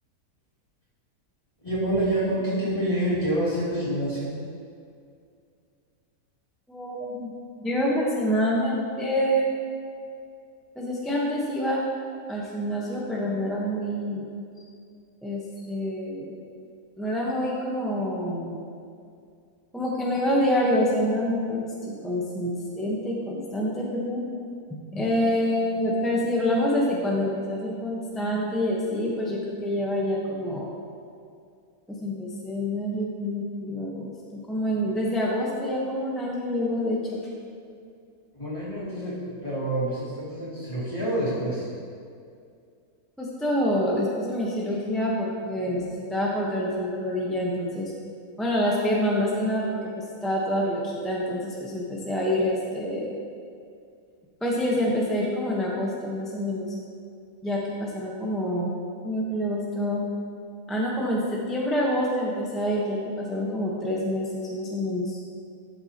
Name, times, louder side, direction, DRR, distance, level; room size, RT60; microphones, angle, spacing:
voice 1, 1.6-4.3 14.6-14.7 15.6-15.7 38.3-41.7, right 1 dB, 20° left, -14 dB, 2.7 m, -27 dB
voice 2, 6.7-7.3 7.6-9.4 10.8-11.8 12.3-14.2 15.2-16.3 17.0-18.5 19.7-24.3 24.9-30.8 31.9-37.2 43.2-47.9 48.4-53.1 54.4-56.7 57.4-58.7 59.0-60.0 60.7-65.2, equal, ahead, -4 dB, 0.9 m, -27 dB
13.0 x 7.8 x 2.9 m, 2.3 s
omnidirectional pair, 1.7 m